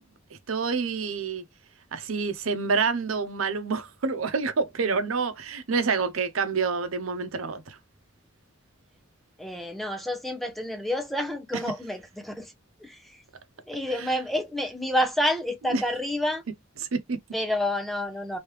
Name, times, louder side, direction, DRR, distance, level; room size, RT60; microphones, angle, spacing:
voice 1, 0.5-1.4 1.9-7.8 14.0-14.1 15.7-15.8 16.9-17.2, right 4 dB, 90° right, 0.7 m, -27 dB
voice 2, 9.4-12.5 12.8-13.2 13.7-16.4 17.3-18.4, left 1 dB, ahead, 0.7 m, -29 dB
3.1 x 2.8 x 3.1 m
head